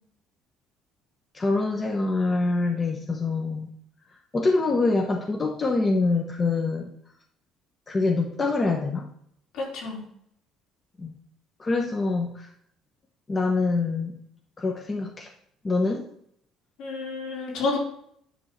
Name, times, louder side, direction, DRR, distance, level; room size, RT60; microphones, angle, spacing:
voice 1, 1.3-3.7 4.3-6.9 7.9-9.1 11.0-11.1 11.6-12.5 13.3-14.2 14.6-15.3 15.6-16.1, left 3 dB, 25° left, 2 dB, 1.0 m, -25 dB
voice 2, 9.5-10.0 16.8-17.8, left 3 dB, 75° left, -2 dB, 3.2 m, -29 dB
10.0 x 3.6 x 6.5 m, 0.68 s
cardioid pair, 125°, 0 cm